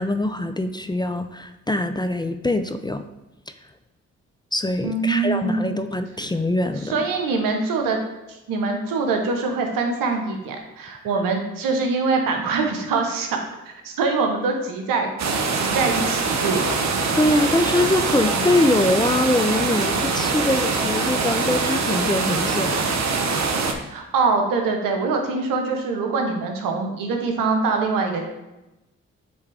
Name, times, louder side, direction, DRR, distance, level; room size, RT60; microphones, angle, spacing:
voice 1, 0.0-3.0 4.5-7.0 17.2-22.8, left 2 dB, 15° left, 8 dB, 0.4 m, -23 dB
voice 2, 4.8-5.8 6.8-8.0 8.3-13.4 13.7-16.7 23.9-28.2, right 4 dB, 75° right, 3 dB, 1.0 m, -24 dB
sound 1, 15.2-23.7, right 4 dB, 55° right, 0.9 m, -23 dB
8.2 x 3.5 x 3.3 m, 0.98 s
hypercardioid pair, 40°, 33 cm